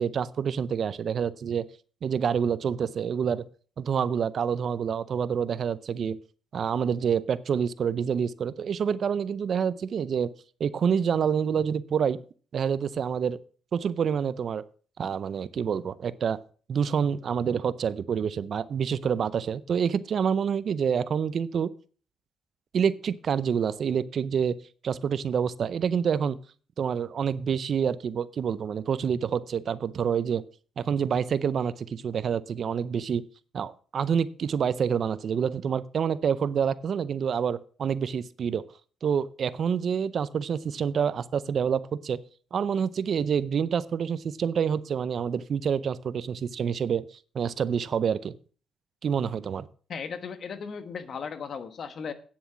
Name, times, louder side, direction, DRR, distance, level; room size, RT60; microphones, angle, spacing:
voice 1, 0.0-1.7 2.0-3.4 3.8-6.2 6.5-10.3 10.6-12.2 12.5-13.4 13.7-14.6 15.0-16.4 16.7-21.7 22.7-24.6 24.8-26.4 26.8-30.4 30.8-33.2 33.5-38.6 39.0-42.2 42.5-47.1 47.3-48.3 49.0-49.7, right 7 dB, 55° right, 17 dB, 0.6 m, -27 dB
voice 2, 49.9-52.1, left 6 dB, 55° left, 10 dB, 1.3 m, -36 dB
9.5 x 7.2 x 6.0 m, 0.41 s
cardioid pair, 90°, 0 cm